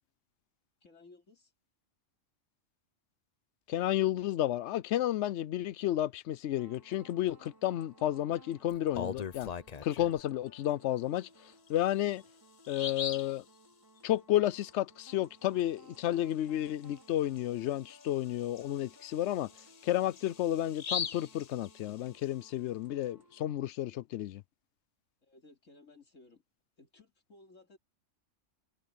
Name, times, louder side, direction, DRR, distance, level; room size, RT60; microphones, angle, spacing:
voice 1, 0.8-1.5 25.2-26.4 26.8-27.8, left 3 dB, 90° left, 3.3 m, -58 dB
voice 2, 3.7-9.5 9.8-11.3 11.7-12.2 12.7-13.4 14.0-19.5 19.8-24.4, left 13 dB, 70° left, 0.8 m, -31 dB
sound 1, 6.6-23.6, right 1 dB, 15° right, 2.6 m, -60 dB
Bird vocalization bird call bird song, 8.7-10.2 11.7-11.8 12.2-12.3 12.6-13.4 16.8-17.0 17.4-17.5 18.0-22.2, left 7 dB, 45° left, 0.6 m, -40 dB
omnidirectional pair, 1.3 m